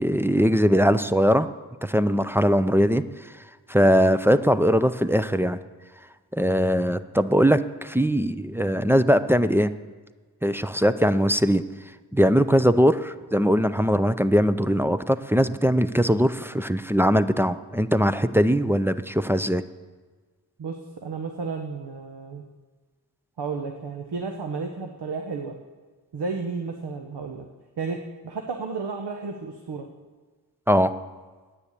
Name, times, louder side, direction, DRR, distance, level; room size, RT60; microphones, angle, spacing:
voice 1, 0.0-1.5 1.8-3.0 3.7-5.6 6.3-9.7 10.4-11.6 12.1-19.6 30.7-30.9, equal, 5° right, 10 dB, 0.3 m, -21 dB
voice 2, 20.6-22.4 23.4-25.6 26.1-27.5 27.8-29.9, right 4 dB, 75° right, 4 dB, 1.0 m, -32 dB
9.9 x 9.1 x 8.2 m, 1.4 s
wide cardioid pair, 130°, 40 cm